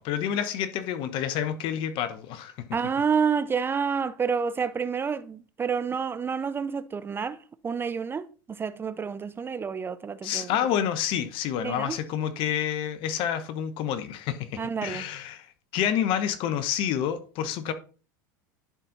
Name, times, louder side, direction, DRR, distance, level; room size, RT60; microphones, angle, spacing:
voice 1, 0.0-2.5 10.2-15.5 15.7-17.7, left 9 dB, 55° left, 1.0 m, -28 dB
voice 2, 2.7-7.4 7.6-10.5 11.6-12.0 14.6-15.1, right 6 dB, 20° right, 0.5 m, -29 dB
11.0 x 4.3 x 4.0 m
hypercardioid pair, 100°, 11 cm